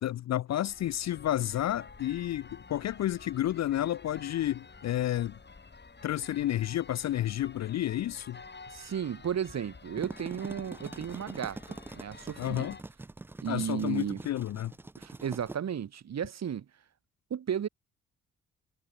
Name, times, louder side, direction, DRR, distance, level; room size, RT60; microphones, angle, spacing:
voice 1, 0.0-5.4 6.0-8.4 12.4-12.8 13.5-14.7, left 12 dB, 40° left, 0.6 m, -31 dB
sound 1, 0.6-12.8, left 4 dB, 25° left, 3.0 m, -51 dB
voice 2, 8.7-12.7 13.4-14.2 15.0-16.6 17.3-17.7, right 8 dB, 40° right, 1.4 m, -34 dB
sound 2, 9.8-15.6, right 2 dB, 5° right, 0.3 m, -44 dB
figure-of-eight pair, 45°, 40 cm